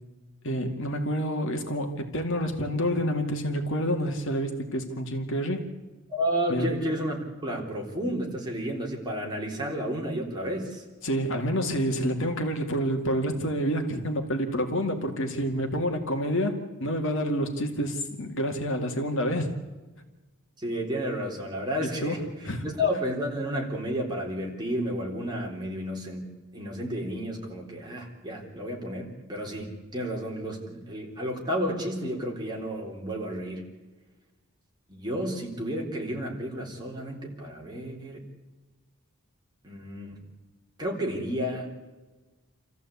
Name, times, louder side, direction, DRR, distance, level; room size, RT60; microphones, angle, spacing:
voice 1, 0.4-5.6 6.5-6.7 11.0-19.5 21.8-22.6, equal, 60° left, 5 dB, 2.2 m, -28 dB
voice 2, 6.1-7.2 7.4-10.8 20.6-22.2 22.6-33.6 34.9-38.2 39.6-40.2 40.8-41.7, equal, 20° right, -1 dB, 3.8 m, -31 dB
28.0 x 14.5 x 8.5 m, 1.2 s
head